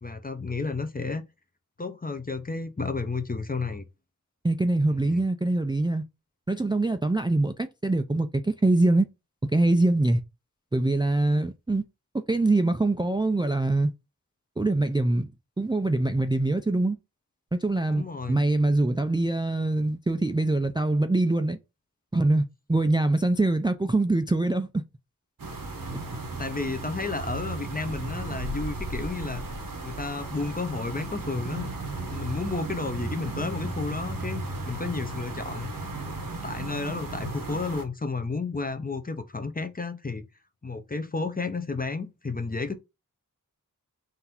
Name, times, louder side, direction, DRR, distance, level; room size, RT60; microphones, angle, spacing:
voice 1, 0.0-1.3 1.8-3.8 5.0-5.2 17.9-18.4 26.4-29.4 29.8-31.7 32.1-35.7 36.4-40.2 40.6-42.7, left 3 dB, 25° left, 0.6 m, -32 dB
voice 2, 4.4-6.0 6.5-9.1 9.4-10.2 10.7-11.8 12.1-13.9 14.6-15.3 15.6-17.0 17.5-21.6 22.1-24.8, right 2 dB, 15° right, 0.4 m, -24 dB
sound 1, 25.4-37.8, right 2 dB, 85° right, 1.1 m, -35 dB
3.9 x 2.6 x 4.2 m
wide cardioid pair, 55°, 34 cm